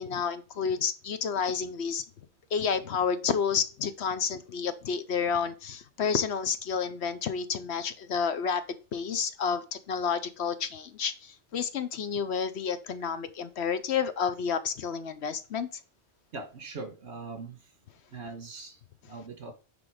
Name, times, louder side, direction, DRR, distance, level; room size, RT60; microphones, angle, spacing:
voice 1, 0.0-2.0 2.5-8.6 8.9-15.7, left 6 dB, 65° left, 0.9 m, -30 dB
voice 2, 16.3-17.6 18.1-19.5, right 3 dB, 65° right, 1.8 m, -41 dB
9.8 x 3.5 x 4.9 m
omnidirectional pair, 1.2 m